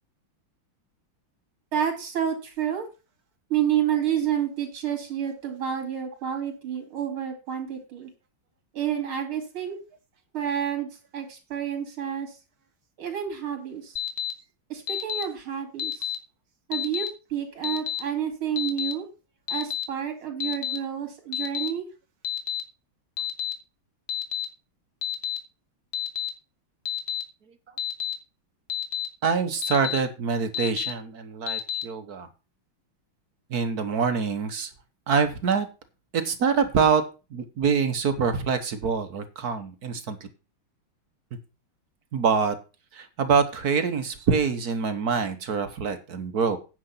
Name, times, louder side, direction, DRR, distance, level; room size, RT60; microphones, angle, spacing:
voice 1, 1.7-2.9 3.5-8.1 8.7-9.8 10.3-12.4 13.0-14.0 14.7-16.1 16.7-19.1 19.5-21.9, right 9 dB, 90° right, 4 dB, 3.4 m, -29 dB
Alarm, 14.0-14.3 14.9-15.2 15.8-16.2 16.7-17.1 17.6-18.0 18.6-18.9 19.5-19.8 20.4-20.8 21.3-21.7 22.2-22.6 23.2-23.5 24.1-24.4 25.0-25.4 25.9-26.3 26.9-27.2 27.8-28.1 28.7-29.1 29.6-30.0 30.5-30.9 31.5-31.8, left 10 dB, 85° left, 2.3 m, -29 dB
voice 2, 29.2-32.3 33.5-34.7 35.1-35.7 36.1-37.0 37.3-40.2 42.1-42.5 42.9-46.6, right 5 dB, 50° right, 9 dB, 1.6 m, -25 dB
9.6 x 7.3 x 5.6 m, 0.31 s
omnidirectional pair, 2.3 m